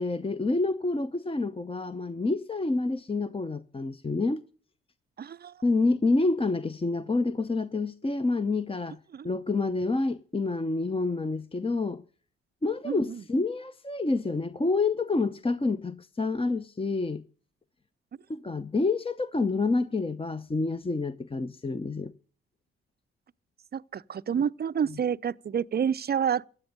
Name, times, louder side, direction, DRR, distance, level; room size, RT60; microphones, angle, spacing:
voice 1, 0.0-4.4 5.6-9.0 9.2-12.0 12.6-17.2 18.3-22.1 24.9-25.0, left 3 dB, 20° left, 0.8 m, -28 dB
voice 2, 5.2-5.5 9.1-9.3 12.8-13.2 23.7-26.4, right 8 dB, 35° right, 0.6 m, -29 dB
15.5 x 9.8 x 6.6 m
hypercardioid pair, 45°, 29 cm